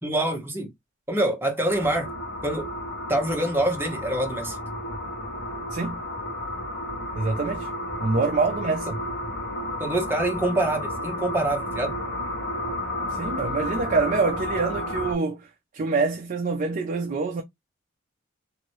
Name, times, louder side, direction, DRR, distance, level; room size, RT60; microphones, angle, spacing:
voice 1, 0.0-0.7 1.1-2.1 2.4-2.7 3.1-4.6 9.8-12.0, right 1 dB, 10° right, 0.9 m, -25 dB
sound 1, 1.7-15.1, left 1 dB, 60° left, 1.1 m, -32 dB
voice 2, 7.2-7.7 8.0-9.0 13.1-15.5 15.7-17.4, right 4 dB, 40° right, 0.5 m, -25 dB
2.8 x 2.7 x 3.0 m
head